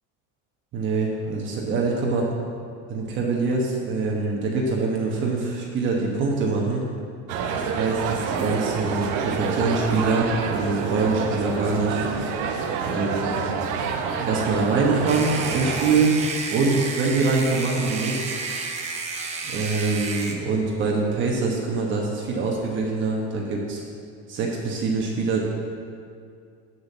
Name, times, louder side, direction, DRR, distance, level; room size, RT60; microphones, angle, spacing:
voice 1, 0.7-2.3 2.9-6.8 7.5-12.0 12.8-13.4 14.2-16.1 16.5-18.3 19.4-23.8 24.3-25.4, right 3 dB, 35° right, -2 dB, 1.2 m, -24 dB
sound 1, 7.3-16.0, right 6 dB, 60° right, 1.0 m, -28 dB
sound 2, 15.1-20.3, right 4 dB, 20° right, 0.7 m, -31 dB
7.9 x 6.8 x 7.2 m, 2.3 s
cardioid pair, 170°, 35 cm